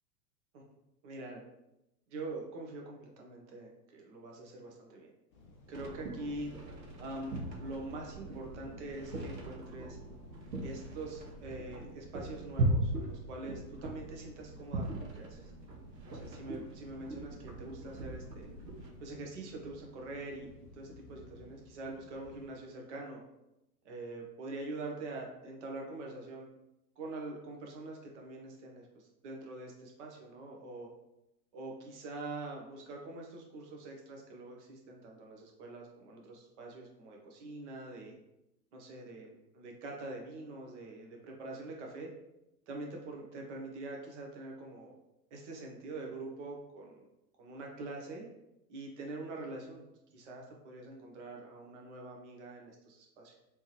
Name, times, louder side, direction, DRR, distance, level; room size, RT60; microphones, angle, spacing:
voice 1, 1.0-1.4 2.1-5.1 5.7-6.5 7.0-10.0 10.6-15.5 16.1-18.5 19.0-23.2 23.8-26.5 27.0-30.9 31.5-38.1 38.7-42.1 42.7-44.9 45.3-47.1 47.4-48.3 48.7-53.4, right 2 dB, 45° right, 0 dB, 1.0 m, -44 dB
sound 1, 5.3-22.5, left 2 dB, 20° left, 0.4 m, -57 dB
sound 2, 5.7-18.9, right 1 dB, 85° right, 0.8 m, -39 dB
3.4 x 2.9 x 3.1 m, 0.91 s
figure-of-eight pair, 100°, 48 cm